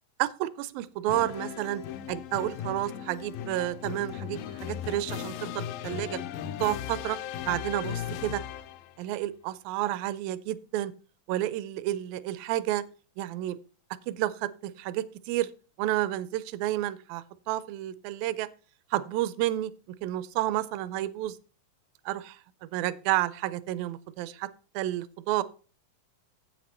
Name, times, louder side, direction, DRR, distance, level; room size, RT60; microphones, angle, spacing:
voice 1, 0.2-1.8 2.1-6.2 6.6-7.2 7.5-8.4 9.0-10.9 11.3-12.8 13.2-13.6 14.1-15.5 15.8-18.5 18.9-19.7 20.0-21.4 22.1-22.4 22.7-24.5 24.8-25.4, right 14 dB, 85° right, 16 dB, 2.4 m, -30 dB
sound 1, 1.1-8.9, left 10 dB, 85° left, 2.4 m, -37 dB
10.0 x 7.9 x 4.3 m, 0.37 s
omnidirectional pair, 4.1 m